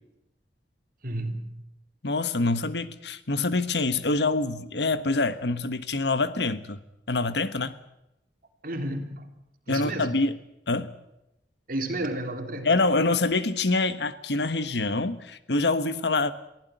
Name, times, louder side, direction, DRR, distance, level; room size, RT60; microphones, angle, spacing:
voice 1, 1.0-1.6 8.6-9.3 9.7-10.2 11.7-12.7, right 1 dB, 55° right, 3.2 m, -32 dB
voice 2, 2.0-6.8 7.1-7.8 9.7-10.4 10.7-10.9 12.6-16.3, left 3 dB, 70° left, 1.3 m, -25 dB
23.0 x 15.5 x 9.3 m
head